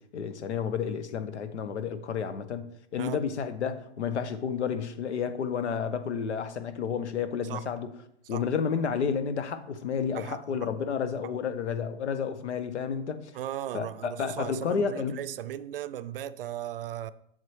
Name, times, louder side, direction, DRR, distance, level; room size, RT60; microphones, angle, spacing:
voice 1, 0.1-7.9 8.3-13.3 13.7-15.2, left 6 dB, 85° left, 1.1 m, -31 dB
voice 2, 13.3-17.1, right 11 dB, 55° right, 0.5 m, -36 dB
7.5 x 7.4 x 3.3 m
hypercardioid pair, 155°, 33 cm